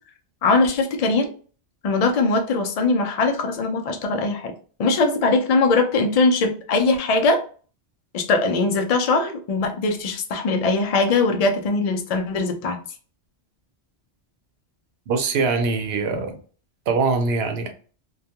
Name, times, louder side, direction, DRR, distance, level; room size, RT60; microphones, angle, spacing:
voice 1, 0.4-1.3 1.8-4.5 4.8-7.4 8.1-12.8, left 3 dB, 65° left, 4 dB, 0.3 m, -21 dB
voice 2, 15.1-16.4 16.9-17.7, right 4 dB, 70° right, 6 dB, 0.8 m, -22 dB
2.2 x 2.2 x 2.8 m, 0.40 s
omnidirectional pair, 1.2 m